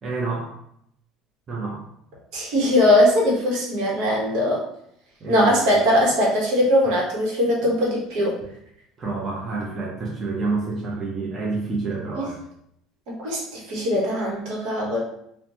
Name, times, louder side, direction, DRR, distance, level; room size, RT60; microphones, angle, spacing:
voice 1, 0.0-0.6 1.5-1.9 5.2-6.0 9.0-12.3, right 3 dB, 25° right, -4 dB, 0.6 m, -28 dB
voice 2, 2.3-4.6 5.3-8.3 12.2-12.3 13.1-15.0, left 1 dB, 70° right, -3 dB, 1.0 m, -20 dB
2.9 x 2.1 x 2.7 m, 0.73 s
cardioid pair, 140°, 0 cm